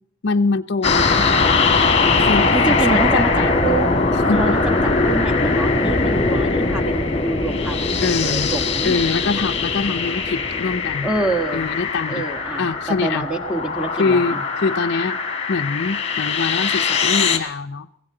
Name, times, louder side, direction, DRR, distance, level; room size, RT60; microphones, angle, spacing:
voice 1, 0.2-1.3 2.3-3.5 4.3-4.6 8.0-8.5 8.8-11.1 11.5-12.2 12.6-13.3 14.0-15.2 15.5-17.9, left 4 dB, 50° left, 5 dB, 0.5 m, -23 dB
sound 1, 0.8-17.4, left 4 dB, 30° left, 1.8 m, -21 dB
voice 2, 2.5-3.9 4.3-9.0 11.0-11.7 12.1-12.7 13.0-14.4, right 2 dB, 5° right, 5 dB, 1.5 m, -26 dB
23.0 x 16.0 x 3.8 m, 0.72 s
head